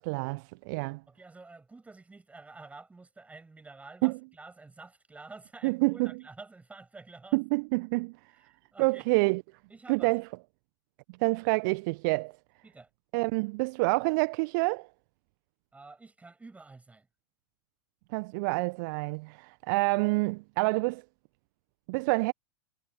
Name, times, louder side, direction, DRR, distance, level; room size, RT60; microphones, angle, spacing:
voice 1, 0.0-1.0 4.0-4.2 5.6-6.2 7.3-8.1 8.8-9.4 9.9-10.3 11.2-12.3 13.1-14.9 18.1-21.0 21.9-22.3, right 28 dB, 50° right, 1.5 m, -27 dB
voice 2, 1.1-7.4 8.3-9.0 9.7-10.1 12.6-12.9 15.7-17.1, right 3 dB, 10° right, 7.3 m, -50 dB
figure-of-eight pair, 90°, 14 cm